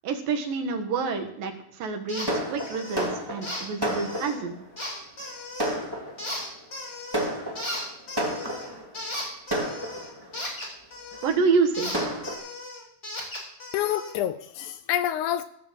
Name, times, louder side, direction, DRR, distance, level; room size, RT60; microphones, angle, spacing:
voice 1, 0.0-4.6 11.2-11.9, right 5 dB, 90° right, 5 dB, 3.3 m, -27 dB
sound 1, 2.1-2.3 2.6-3.1 3.4-4.3 4.8-5.8 6.2-7.3 7.6-11.4 11.7-14.1, left 1 dB, 20° left, 4.2 m, -36 dB
Fireworks, 2.3-4.6 5.2-5.3 5.6-6.5 7.1-8.9 9.5-10.4 11.1-11.2 11.5-11.6 11.9-12.3, right 1 dB, 10° right, 1.9 m, -31 dB
voice 2, 13.7-15.4, left 11 dB, 80° left, 11 dB, 1.9 m, -27 dB
17.0 x 5.8 x 7.4 m, 0.77 s
omnidirectional pair, 3.9 m